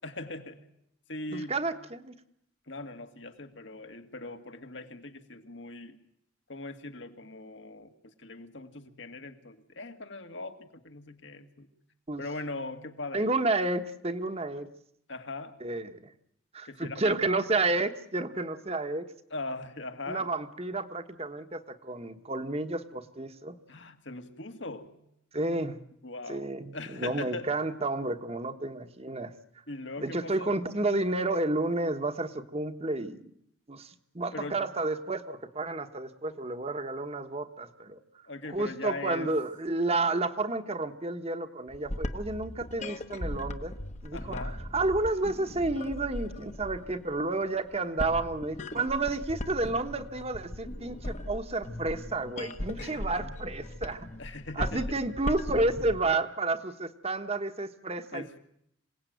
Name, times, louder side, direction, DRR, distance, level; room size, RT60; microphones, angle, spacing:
voice 1, 0.0-0.6 1.1-1.6 2.7-6.0 6.5-11.7 12.2-13.3 15.1-15.6 16.6-17.4 19.3-20.3 23.7-24.9 26.0-27.5 29.7-30.6 34.3-34.7 38.3-39.3 44.1-44.6 52.8-53.2 54.2-55.0 58.1-58.4, left 2 dB, 65° left, 7 dB, 2.0 m, -40 dB
voice 2, 1.3-2.1 12.1-12.2 13.1-14.7 15.6-16.0 16.5-19.1 20.1-23.6 25.3-25.8 26.3-29.3 30.0-33.2 33.7-38.0 38.5-43.7 44.0-44.4 44.7-54.1 54.6-58.4, right 2 dB, 30° right, 8 dB, 1.3 m, -31 dB
sound 1, 41.7-56.0, left 1 dB, 35° left, 1.2 m, -38 dB
27.0 x 18.0 x 9.3 m, 0.75 s
head